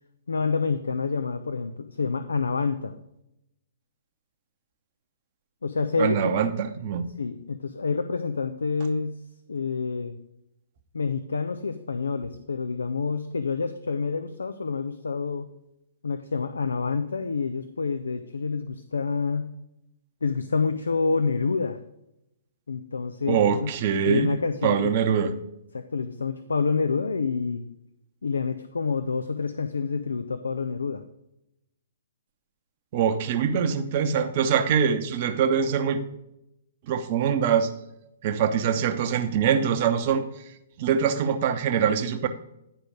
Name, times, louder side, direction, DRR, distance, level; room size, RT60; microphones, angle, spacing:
voice 1, 0.3-2.9 5.6-6.4 7.2-9.2 9.5-10.2 10.9-15.5 16.0-19.5 20.2-21.8 22.7-23.7 24.0-24.9 25.7-27.6 28.2-31.0, left 4 dB, 70° left, 10 dB, 0.5 m, -28 dB
voice 2, 6.0-7.1 23.3-24.3 24.6-25.3 32.9-36.0 36.9-37.7 38.2-40.2 40.8-42.3, right 7 dB, 40° right, 6 dB, 0.9 m, -23 dB
10.0 x 5.1 x 4.8 m, 0.84 s
figure-of-eight pair, 120°, 0 cm